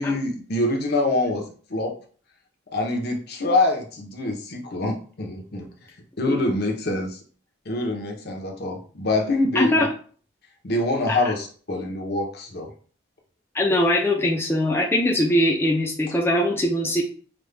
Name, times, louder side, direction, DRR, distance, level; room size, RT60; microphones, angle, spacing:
voice 1, 0.0-1.9 2.7-5.7 6.2-7.2 7.7-9.9 10.6-12.7, left 2 dB, 55° left, 2 dB, 0.9 m, -25 dB
voice 2, 9.5-9.9 11.1-11.2 13.5-17.0, left 1 dB, 10° left, -1 dB, 0.6 m, -21 dB
5.2 x 2.4 x 3.3 m, 0.42 s
head